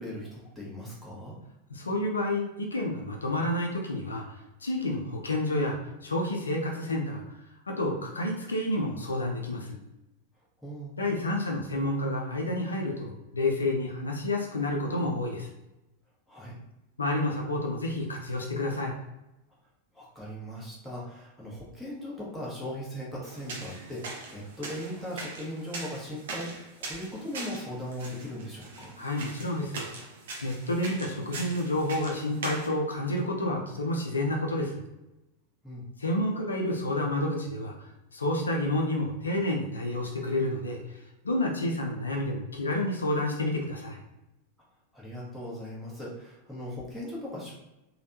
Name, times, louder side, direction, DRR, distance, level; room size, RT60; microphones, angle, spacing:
voice 1, 0.0-1.4 10.6-11.0 16.3-16.6 19.9-29.0 35.6-35.8 44.9-47.5, equal, ahead, -7 dB, 1.2 m, -39 dB
voice 2, 1.7-4.3 4.6-7.4 7.7-9.8 11.0-15.5 17.0-18.9 29.0-29.9 30.4-34.8 36.0-44.0, left 1 dB, 75° left, 0 dB, 0.5 m, -29 dB
sound 1, 23.2-32.7, right 3 dB, 60° right, 0.6 m, -41 dB
3.3 x 2.3 x 2.7 m, 0.97 s
figure-of-eight pair, 90°, 0 cm